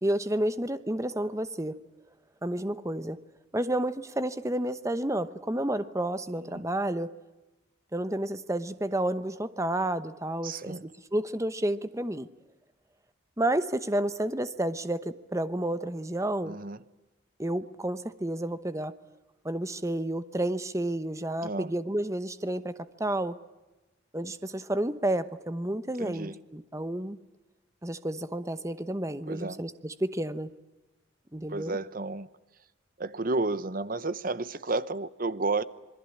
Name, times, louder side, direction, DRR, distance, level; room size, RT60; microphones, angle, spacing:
voice 1, 0.0-1.8 2.4-3.2 3.5-7.1 7.9-12.3 13.4-16.6 17.4-18.9 19.4-23.4 24.1-27.2 27.8-30.5 31.3-31.8, right 1 dB, 15° right, 0.9 m, -30 dB
voice 2, 6.3-6.6 10.4-10.8 16.5-16.8 21.4-21.7 26.0-26.4 29.3-29.6 31.5-32.3 33.0-35.6, right 3 dB, 45° right, 0.9 m, -32 dB
27.0 x 21.5 x 8.6 m
head